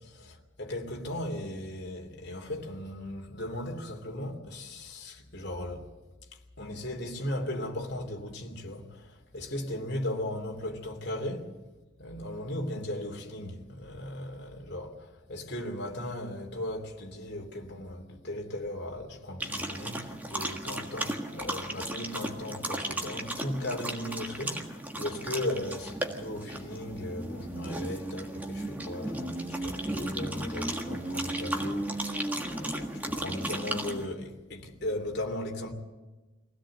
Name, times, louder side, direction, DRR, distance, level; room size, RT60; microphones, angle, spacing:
voice 1, 0.0-5.9 6.3-11.5 12.0-35.7, left 1 dB, 50° left, 2.9 m, -37 dB
sound 1, 19.4-34.1, right 1 dB, 10° right, 1.6 m, -35 dB
24.0 x 16.5 x 7.8 m
head